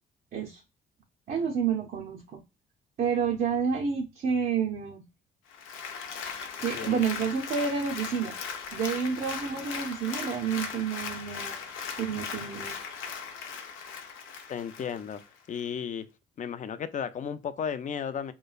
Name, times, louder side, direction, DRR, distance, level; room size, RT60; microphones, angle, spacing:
voice 1, 1.3-2.4 3.0-5.0 6.6-8.3 8.7-11.6 12.0-12.8, right 6 dB, 45° right, 0.5 m, -29 dB
Applause, 5.5-15.3 15.7-15.8, left 6 dB, 85° left, 0.6 m, -38 dB
voice 2, 6.7-7.0 14.5-15.2 15.5-16.1 16.4-18.3, left 7 dB, 40° left, 0.4 m, -34 dB
3.0 x 2.1 x 2.4 m
cardioid pair, 90°, 20 cm